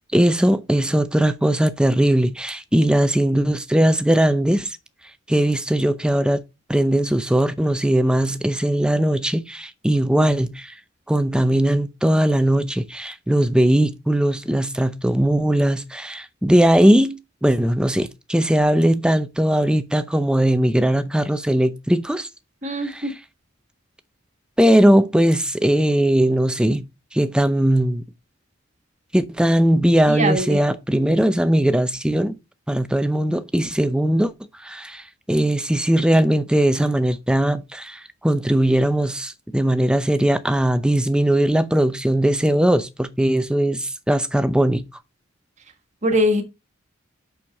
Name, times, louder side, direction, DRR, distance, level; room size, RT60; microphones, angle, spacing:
voice 1, 0.1-4.8 5.3-6.4 6.7-10.7 11.1-22.3 22.8-23.0 24.6-26.9 27.1-28.0 29.1-32.4 32.7-34.3 34.6-44.8, right 1 dB, 5° right, 0.6 m, -19 dB
voice 2, 22.6-23.1 30.1-30.6 46.0-46.4, equal, 35° right, 1.6 m, -21 dB
6.4 x 6.1 x 5.2 m
head